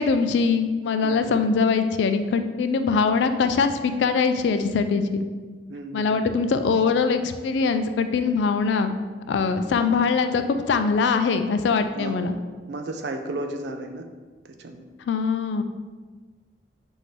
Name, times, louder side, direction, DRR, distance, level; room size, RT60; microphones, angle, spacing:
voice 1, 0.0-5.2 5.9-9.0 9.3-12.4 15.0-15.6, left 5 dB, 75° left, 9 dB, 0.3 m, -22 dB
voice 2, 5.7-6.2 11.9-12.2 12.7-14.0 14.4-14.8, right 2 dB, 65° right, 5 dB, 0.4 m, -33 dB
5.9 x 2.7 x 3.1 m, 1.4 s
head